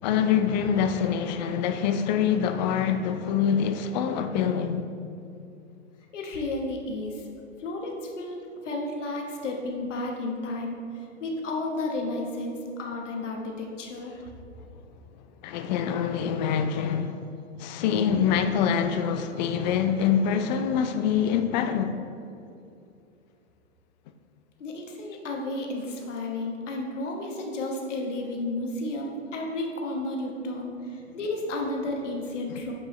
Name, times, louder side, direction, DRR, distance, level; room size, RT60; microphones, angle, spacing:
voice 1, 0.0-4.9 15.4-17.3 17.6-22.0, left 8 dB, 40° left, 0.5 m, -25 dB
voice 2, 6.1-7.2 7.6-14.2 24.6-32.7, left 2 dB, 75° left, 1.3 m, -32 dB
7.9 x 5.3 x 3.1 m
hypercardioid pair, 115°, 37 cm